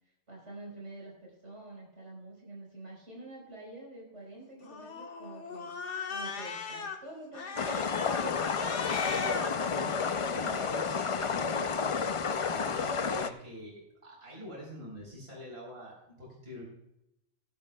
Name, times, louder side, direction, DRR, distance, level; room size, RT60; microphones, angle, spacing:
voice 1, 0.3-5.7 6.1-8.0, right 2 dB, 70° right, -2 dB, 4.7 m, -47 dB
Cat, 4.6-7.0 7.3-9.5, left 4 dB, 70° left, 1.6 m, -37 dB
sound 1, 7.6-13.3, left 5 dB, 50° left, 0.3 m, -31 dB
voice 2, 8.9-12.2 12.5-16.6, left 1 dB, 55° right, -2 dB, 4.3 m, -45 dB
18.0 x 11.0 x 2.3 m, 0.85 s
omnidirectional pair, 1.2 m